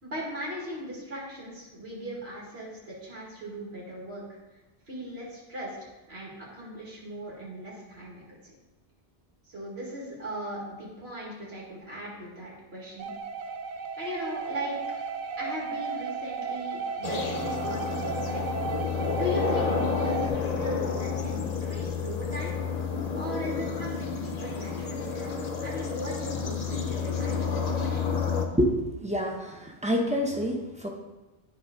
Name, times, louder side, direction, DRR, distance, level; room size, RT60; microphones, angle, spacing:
voice 1, 0.0-4.4 4.9-8.5 9.5-13.1 14.0-14.8 15.4-18.4 19.1-22.6 23.2-28.1, equal, 75° right, -5 dB, 2.3 m, -38 dB
sound 1, 13.0-20.3, right 5 dB, 55° right, 0.7 m, -34 dB
sound 2, 17.0-28.5, left 6 dB, 45° left, 0.7 m, -30 dB
voice 2, 29.0-30.9, equal, 5° right, 0 dB, 0.9 m, -27 dB
10.0 x 3.7 x 5.1 m, 1.1 s
omnidirectional pair, 1.1 m